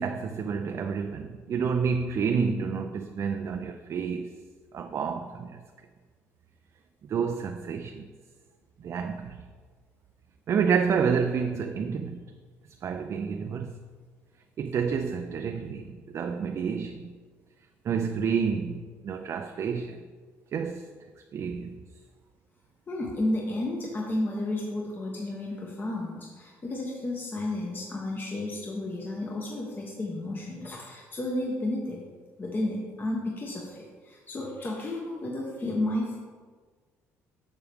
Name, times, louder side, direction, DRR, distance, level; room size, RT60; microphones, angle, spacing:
voice 1, 0.0-4.3 4.7-5.6 7.0-8.1 8.8-9.4 10.5-12.2 12.8-13.7 14.6-17.1 17.8-20.0 20.5-20.9 21.3-21.8, right 6 dB, 50° right, 0.4 m, -29 dB
voice 2, 22.9-32.0 32.4-36.2, left 1 dB, 30° left, 1.1 m, -32 dB
7.0 x 6.6 x 3.5 m
supercardioid pair, 80°, 6 cm